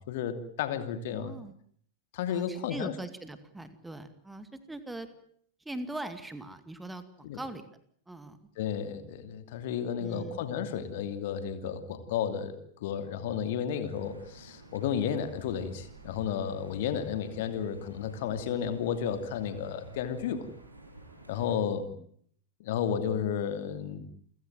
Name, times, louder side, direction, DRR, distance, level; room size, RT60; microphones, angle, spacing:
voice 1, 0.0-1.3 2.1-2.9 7.2-7.4 8.6-20.5 21.3-21.9 22.6-24.0, left 8 dB, 55° left, 9 dB, 2.8 m, -32 dB
voice 2, 1.1-1.5 2.3-5.1 5.7-7.6 8.1-8.4 10.0-10.4 22.0-22.1, right 2 dB, 5° right, 11 dB, 2.2 m, -41 dB
sound 1, 13.9-21.5, right 2 dB, 80° right, 6.6 m, -51 dB
29.5 x 16.0 x 9.2 m, 0.63 s
figure-of-eight pair, 90°, 0 cm